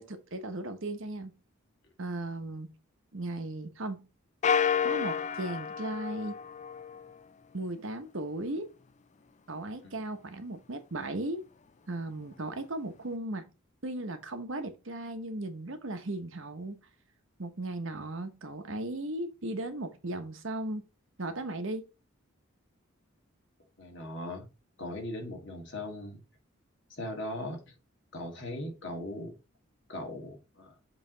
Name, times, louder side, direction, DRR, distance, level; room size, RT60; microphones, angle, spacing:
voice 1, 0.0-1.4 2.0-2.7 3.1-4.0 4.8-6.4 7.5-8.7 9.5-11.4 11.9-13.5 13.8-16.8 17.4-20.8 21.2-21.8, right 2 dB, 65° right, 1.0 m, -36 dB
sound 1, 4.4-7.1, left 7 dB, 35° left, 0.3 m, -30 dB
voice 2, 23.8-24.4 24.8-26.2 26.9-27.6 28.1-29.3 29.9-30.7, left 1 dB, 60° left, 2.2 m, -39 dB
7.4 x 3.3 x 3.9 m
head